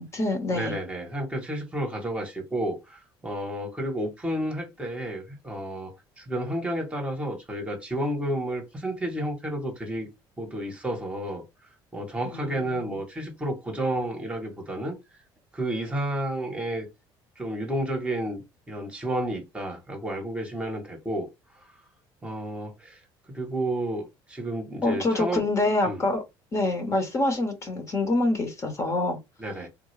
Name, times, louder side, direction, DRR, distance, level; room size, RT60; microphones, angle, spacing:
voice 1, 0.0-0.7 12.3-13.0 24.8-26.2 26.5-29.2, left 2 dB, 30° left, 1.0 m, -26 dB
voice 2, 0.5-10.1 10.4-11.4 11.9-15.2 15.5-16.9 17.4-21.3 21.6-21.7 22.2-23.0 23.3-25.4 25.8-26.0 29.4-29.7, right 1 dB, 15° right, 1.1 m, -31 dB
3.6 x 2.3 x 3.2 m
cardioid pair, 125°, 9 cm